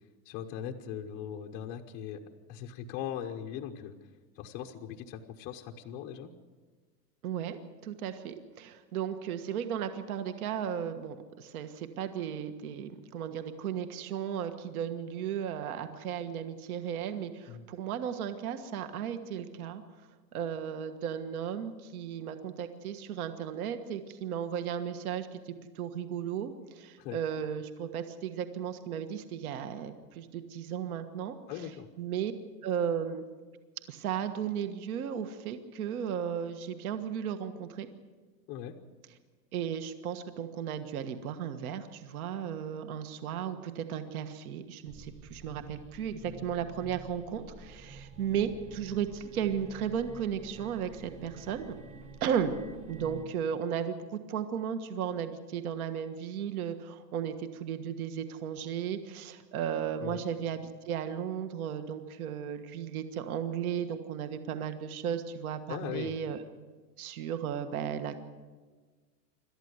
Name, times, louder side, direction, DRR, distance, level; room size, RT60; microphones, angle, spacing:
voice 1, 0.3-2.2 2.5-4.0 4.4-6.3 17.5-17.7 27.0-27.2 31.5-31.9 38.5-38.8 60.0-60.2 65.7-66.2, left 9 dB, 20° left, 3 dB, 0.7 m, -39 dB
voice 2, 7.2-19.8 20.3-31.7 32.0-32.3 32.6-33.2 33.9-37.9 39.5-51.8 52.2-52.6 52.9-66.4 67.0-68.2, right 8 dB, 60° right, 9 dB, 1.5 m, -35 dB
sound 1, 44.9-53.3, right 3 dB, 15° right, 1.1 m, -49 dB
27.0 x 12.5 x 8.1 m, 1.4 s
supercardioid pair, 165°, 50 cm